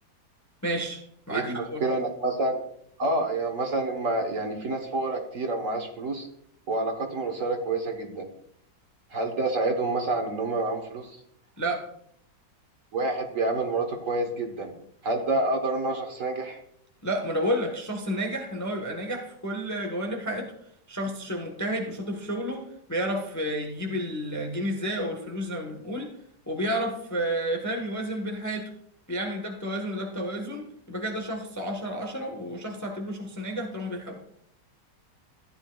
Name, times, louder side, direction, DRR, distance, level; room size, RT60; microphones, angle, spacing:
voice 1, 0.6-1.0 1.3-1.8 11.6-11.8 17.0-20.5 20.9-26.1 26.5-28.7 29.1-34.2, equal, 15° left, 2 dB, 0.8 m, -31 dB
voice 2, 1.3-2.6 3.0-6.3 6.7-8.3 9.1-11.2 12.9-14.7 15.0-16.6, right 2 dB, 50° right, 4 dB, 1.4 m, -28 dB
14.5 x 9.7 x 2.3 m, 0.70 s
omnidirectional pair, 1.9 m